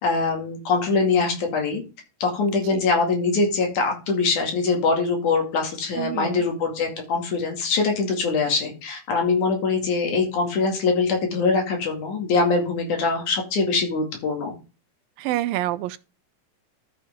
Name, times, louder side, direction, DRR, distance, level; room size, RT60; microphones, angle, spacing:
voice 1, 0.0-1.8 2.2-14.5, left 4 dB, 60° left, 3.6 m, -23 dB
voice 2, 6.0-6.5 15.2-16.0, right 14 dB, 85° right, 2.4 m, -27 dB
13.0 x 6.0 x 3.6 m
omnidirectional pair, 4.0 m